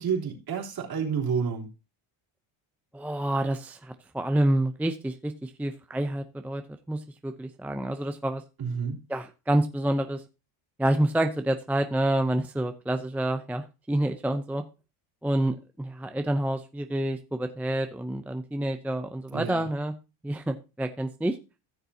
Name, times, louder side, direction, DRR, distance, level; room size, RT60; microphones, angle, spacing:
voice 1, 0.0-1.7 8.6-9.0 19.3-19.6, right 6 dB, 45° right, -1 dB, 3.4 m, -29 dB
voice 2, 2.9-6.6 6.9-8.4 9.1-10.2 10.8-14.6 15.2-19.9 20.2-21.4, right 1 dB, 5° right, 7 dB, 0.5 m, -28 dB
14.5 x 6.8 x 2.8 m, 0.29 s
cardioid pair, 120°, 48 cm